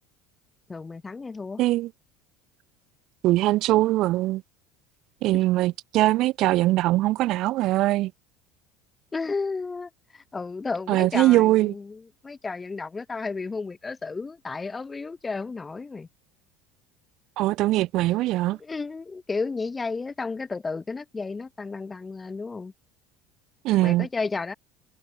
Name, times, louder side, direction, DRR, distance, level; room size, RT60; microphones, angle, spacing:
voice 1, 0.7-1.6 5.3-5.4 9.1-16.1 18.6-22.7 23.8-24.5, left 4 dB, 20° left, 2.1 m, -33 dB
voice 2, 1.6-1.9 3.2-4.4 5.2-8.1 10.9-11.7 17.4-18.6 23.6-24.1, right 17 dB, 60° right, 0.4 m, -21 dB
hypercardioid pair, 75°, 0 cm